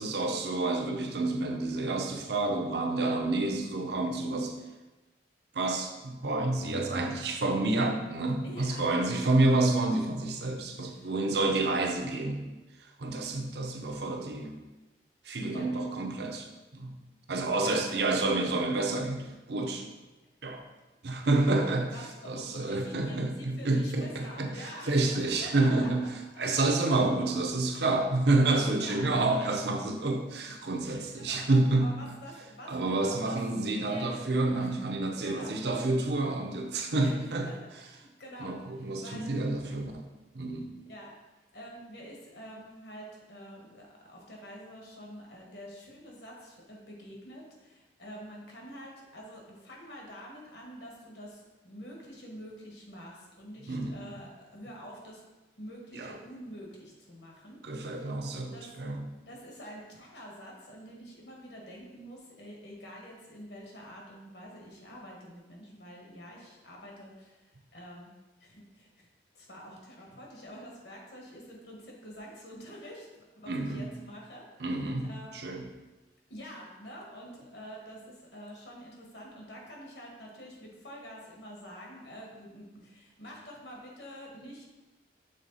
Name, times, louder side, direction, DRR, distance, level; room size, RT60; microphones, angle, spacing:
voice 1, 0.0-4.5 5.5-12.4 13.0-14.6 15.2-16.9 17.3-19.9 20.4-20.6 21.0-21.9 22.2-26.1 26.4-31.9 32.7-37.5 38.4-40.1 40.3-40.7 53.7-53.9 55.9-56.1 57.6-59.0 73.5-73.9 74.6-75.1 75.3-75.6, right 2 dB, 65° right, 3 dB, 0.7 m, -29 dB
voice 2, 8.4-9.1 10.7-11.2 15.5-15.7 17.6-17.9 21.4-25.9 26.7-26.9 28.7-29.4 30.9-34.7 35.0-35.6 37.0-39.3 39.7-39.8 40.8-41.1 41.5-55.2 55.6-58.8 59.2-67.4 67.7-68.1 68.4-68.9 69.3-75.4 76.3-84.6, equal, 70° left, -1 dB, 1.5 m, -47 dB
6.4 x 3.7 x 4.0 m, 1.1 s
head